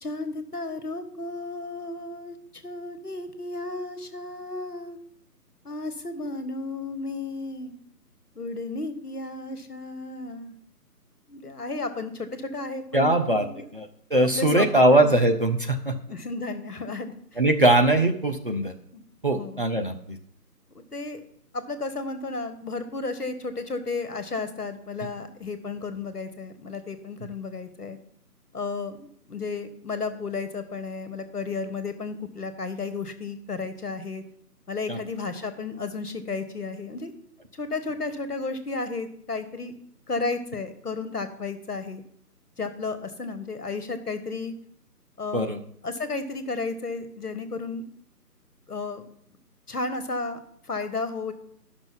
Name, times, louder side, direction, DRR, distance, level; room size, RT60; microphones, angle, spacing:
voice 1, 0.0-5.0 5.6-7.7 8.3-10.6 11.3-13.6 14.1-15.2 16.1-17.4 18.9-19.0 19.3-19.6 20.7-21.2 21.5-28.0 28.5-34.2 34.7-37.1 37.5-39.7 40.1-42.0 42.6-44.5 45.2-45.5 45.8-47.8 48.7-49.0 49.7-51.3, left 3 dB, 70° left, 10 dB, 1.4 m, -33 dB
voice 2, 12.9-13.4 13.7-15.9 17.4-18.7 19.2-20.2 34.9-35.0 45.3-45.6, right 1 dB, 35° right, 4 dB, 0.7 m, -21 dB
10.5 x 6.1 x 5.7 m, 0.66 s
figure-of-eight pair, 150°, 48 cm